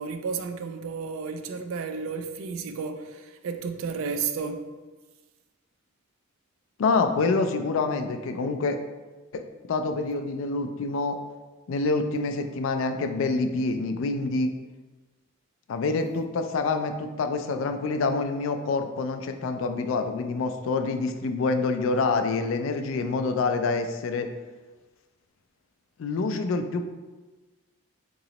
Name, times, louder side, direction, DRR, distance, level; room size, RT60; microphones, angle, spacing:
voice 1, 0.0-4.7, right 5 dB, 75° right, 0.3 m, -32 dB
voice 2, 6.8-8.8 9.3-9.4 9.7-11.2 11.7-14.5 15.7-24.3 26.0-26.9, left 3 dB, 65° left, 0.3 m, -26 dB
3.8 x 3.0 x 2.9 m
head